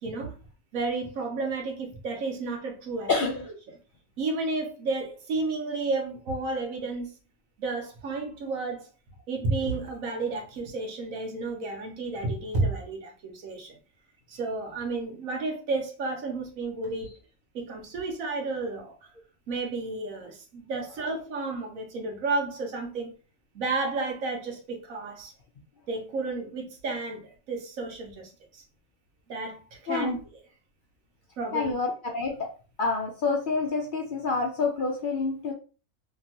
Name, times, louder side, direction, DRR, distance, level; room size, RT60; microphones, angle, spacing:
voice 1, 0.0-0.3 0.7-3.1 4.2-7.1 7.6-8.9 9.3-13.8 14.3-17.1 17.5-18.9 19.5-23.1 23.5-25.3 25.9-28.6 29.3-30.2 31.4-31.7, right 3 dB, 85° right, 1.3 m, -32 dB
voice 2, 3.1-3.5 29.9-30.2 31.5-32.5 32.8-35.5, left 4 dB, 60° left, 0.5 m, -28 dB
2.9 x 2.6 x 2.8 m
omnidirectional pair, 1.4 m